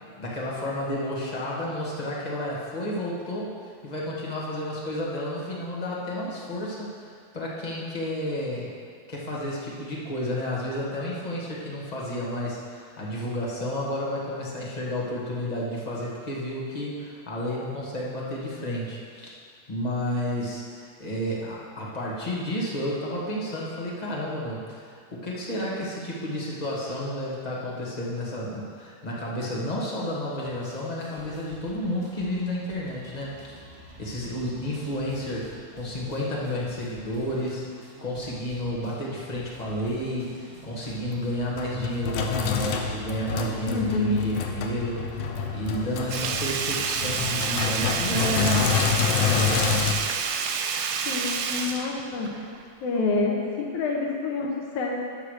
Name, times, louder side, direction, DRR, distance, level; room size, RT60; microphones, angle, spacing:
voice 1, 0.0-8.7 9.1-19.4 19.7-33.6 34.0-37.7 38.0-50.0, equal, 30° left, -5 dB, 0.7 m, -31 dB
sound 1, 30.4-46.6, right 1 dB, 60° right, 0.6 m, -49 dB
Sink (filling or washing), 41.1-49.9, left 7 dB, 75° left, 1.6 m, -28 dB
voice 2, 43.7-44.2 51.1-52.5 52.8-55.0, left 3 dB, 90° left, -1 dB, 2.4 m, -27 dB
Sink (filling or washing) 2, 46.1-52.6 53.0-53.1, right 6 dB, 90° right, 2.1 m, -29 dB
9.4 x 5.8 x 6.6 m, 2.2 s
omnidirectional pair, 3.3 m